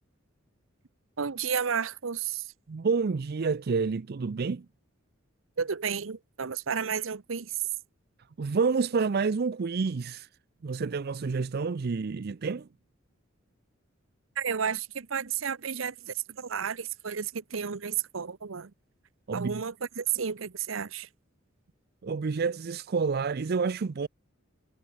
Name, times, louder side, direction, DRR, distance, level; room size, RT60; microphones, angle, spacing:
voice 1, 1.2-2.4 5.6-7.5 14.4-18.7 19.3-21.1, right 7 dB, 75° right, 0.8 m, -32 dB
voice 2, 2.7-4.7 8.4-10.3 10.6-12.7 19.3-19.6 22.0-24.1, right 4 dB, 50° right, 0.5 m, -29 dB
head